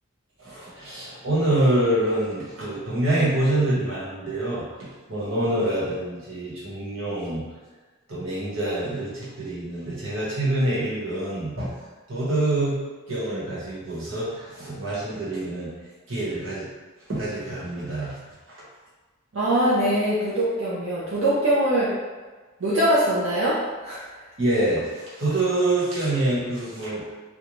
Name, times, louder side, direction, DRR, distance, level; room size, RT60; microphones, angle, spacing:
voice 1, 0.4-7.4 8.1-11.7 12.1-12.8 13.1-15.7 16.1-16.7 17.1-18.2 18.5-18.6 24.4-27.0, right 1 dB, 65° right, -8 dB, 1.1 m, -26 dB
voice 2, 19.3-21.9 22.6-24.0, right 1 dB, 85° right, -9 dB, 0.6 m, -22 dB
2.5 x 2.2 x 3.0 m, 1.3 s
head